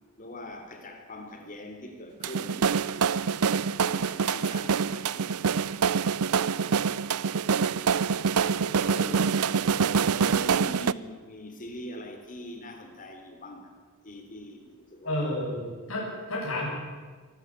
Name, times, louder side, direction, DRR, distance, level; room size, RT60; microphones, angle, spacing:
voice 1, 0.2-2.7 3.9-5.5 8.8-9.5 10.2-13.7 14.0-15.3, left 1 dB, 40° left, 5 dB, 3.4 m, -42 dB
sound 1, 2.2-10.9, right 6 dB, 85° right, 0.5 m, -26 dB
voice 2, 15.0-16.7, left 1 dB, 65° left, -4 dB, 7.4 m, -31 dB
24.0 x 13.0 x 8.9 m, 1.5 s
head